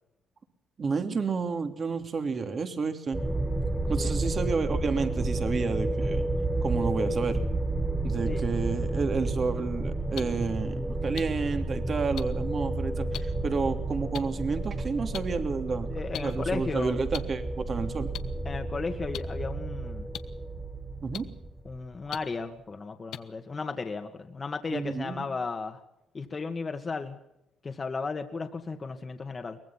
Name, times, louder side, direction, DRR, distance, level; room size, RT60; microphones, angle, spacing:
voice 1, 0.8-3.2 3.9-6.3 6.6-7.4 8.0-15.9 16.2-18.1 21.0-21.3 24.7-25.3, right 4 dB, 45° right, 7 dB, 3.1 m, -30 dB
sound 1, 3.1-22.0, right 2 dB, 15° right, 1.9 m, -31 dB
voice 2, 4.0-4.3 8.2-8.4 15.9-17.0 18.5-20.1 21.6-25.8 26.1-27.2 27.6-29.6, left 4 dB, 35° left, 5 dB, 2.0 m, -35 dB
sound 2, 10.1-10.2 11.2-11.3 12.2-12.3 13.1-13.2 14.1-14.2 15.1-15.2 16.1-16.2 17.1-17.2 18.1-18.2 19.1-19.2 20.1-20.2 21.1-21.2 22.1-22.2 23.1-23.2, left 11 dB, 80° left, 1.3 m, -36 dB
23.5 x 19.5 x 5.9 m, 0.85 s
cardioid pair, 90°, 0 cm